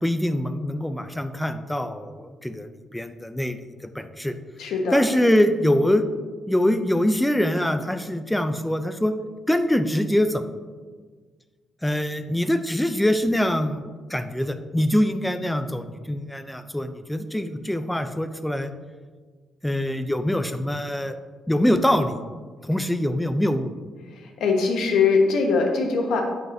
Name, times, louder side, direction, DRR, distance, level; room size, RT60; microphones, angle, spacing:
voice 1, 0.0-3.6 3.9-4.3 4.9-6.0 6.5-9.1 9.5-10.4 11.8-13.8 14.1-18.7 19.6-21.2 21.5-22.2 22.6-23.7, left 1 dB, 5° left, 9 dB, 0.4 m, -23 dB
voice 2, 4.6-5.1 24.1-26.2, left 4 dB, 80° left, 2 dB, 1.2 m, -22 dB
8.9 x 6.3 x 2.6 m, 1.5 s
cardioid pair, 150°, 0 cm